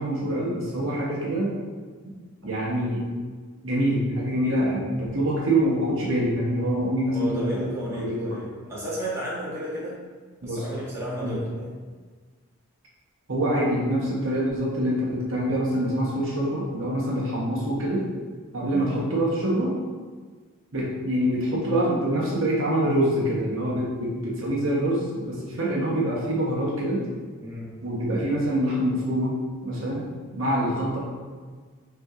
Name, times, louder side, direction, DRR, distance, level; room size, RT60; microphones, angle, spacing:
voice 1, 0.0-1.5 2.4-3.0 3.6-7.6 8.0-8.4 10.4-10.8 11.2-11.4 13.3-18.1 18.5-19.7 20.7-27.0 27.8-29.4 29.6-30.0 30.3-31.1, right 1 dB, 65° right, -4 dB, 0.9 m, -25 dB
voice 2, 7.1-10.0 10.4-11.7 18.7-19.1 27.4-27.8, right 1 dB, 15° right, -9 dB, 1.0 m, -33 dB
6.0 x 2.8 x 2.4 m, 1.5 s
head